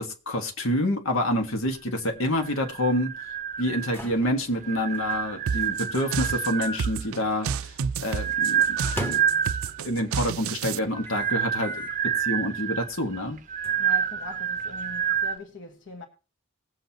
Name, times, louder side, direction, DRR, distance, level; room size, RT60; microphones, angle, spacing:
voice 1, 0.0-3.1 3.6-7.7 8.0-9.2 9.8-11.7 12.2-13.4, left 1 dB, 75° left, 1.6 m, -27 dB
sound 1, 1.4-7.5 8.6-9.9 11.0-12.1 12.6-12.7 13.6-15.3, equal, 10° left, 1.1 m, -41 dB
sound 2, 2.4-4.2 4.6-7.1 7.8-9.9 10.8-15.4, right 8 dB, 35° right, 0.6 m, -28 dB
sound 3, 5.5-10.8, right 6 dB, 85° right, 0.4 m, -30 dB
voice 2, 13.8-16.0, left 1 dB, 60° left, 1.4 m, -42 dB
20.0 x 7.8 x 2.9 m
head